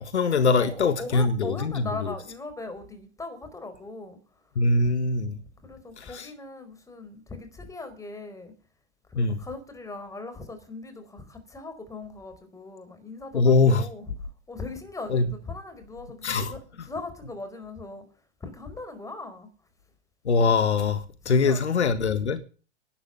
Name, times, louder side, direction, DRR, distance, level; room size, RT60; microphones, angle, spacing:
voice 1, 0.0-2.1 4.5-5.4 6.0-6.3 9.1-9.4 13.3-13.9 15.1-15.2 16.2-16.5 20.2-22.4, left 4 dB, 75° left, 1.6 m, -23 dB
voice 2, 0.6-4.2 5.6-8.5 9.1-14.1 14.5-18.0 18.4-19.5 21.2-21.6, left 3 dB, 10° left, 4.5 m, -39 dB
11.5 x 9.5 x 9.3 m
figure-of-eight pair, 100°, 34 cm